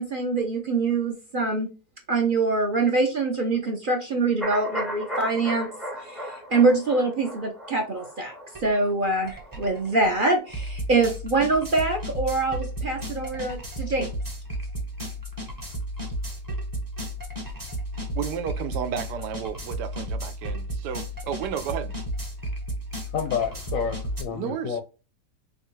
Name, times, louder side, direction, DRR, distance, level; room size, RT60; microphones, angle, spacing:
voice 1, 0.0-1.7 2.1-5.7 6.0-14.1, right 3 dB, 50° right, 0.6 m, -24 dB
sound 1, 4.4-10.3 10.6-10.7, equal, ahead, 0.3 m, -36 dB
sound 2, 8.5-8.7 9.0-24.2, equal, 15° right, 0.7 m, -33 dB
voice 2, 18.1-21.9 24.3-24.8, right 8 dB, 80° right, 1.2 m, -32 dB
voice 3, 23.1-24.8, left 7 dB, 70° left, 0.8 m, -29 dB
4.3 x 2.4 x 3.0 m
omnidirectional pair, 1.8 m